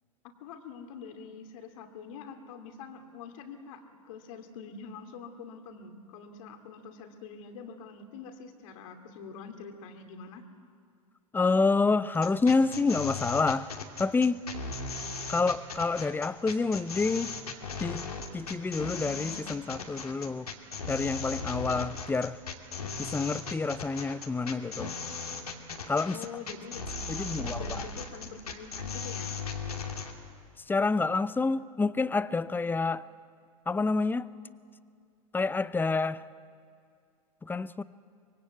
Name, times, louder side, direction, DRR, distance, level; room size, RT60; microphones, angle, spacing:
voice 1, 0.2-10.4 26.1-29.4, left 5 dB, 60° left, 2.7 m, -45 dB
voice 2, 11.3-13.7 14.0-14.4 15.3-17.3 17.8-18.1 18.3-20.5 20.9-22.4 23.0-24.9 25.9-26.2 27.1-27.8 30.7-33.0 33.7-34.3 35.3-36.2 37.4-37.8, left 4 dB, 10° left, 0.7 m, -28 dB
sound 1, 12.1-30.1, left 4 dB, 85° left, 2.5 m, -37 dB
25.0 x 22.5 x 8.2 m
hypercardioid pair, 90°, 19 cm